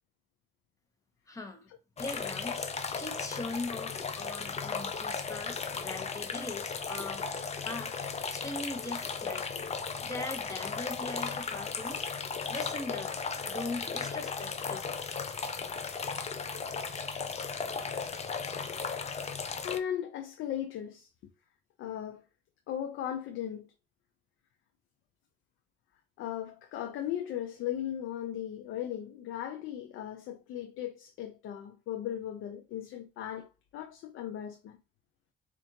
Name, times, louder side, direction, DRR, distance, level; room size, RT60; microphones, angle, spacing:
voice 1, 1.3-1.7 2.0-2.7 3.0-7.2 7.6-7.9 8.3-9.6 10.0-12.0 12.5-15.1, left 2 dB, 15° left, 1.0 m, -40 dB
sound 1, 2.0-19.8, left 5 dB, 35° left, 0.6 m, -36 dB
voice 2, 19.6-21.1 21.8-22.2 22.7-23.7 26.2-34.8, left 10 dB, 85° left, 0.5 m, -37 dB
4.3 x 2.5 x 2.7 m
cardioid pair, 90°, 20 cm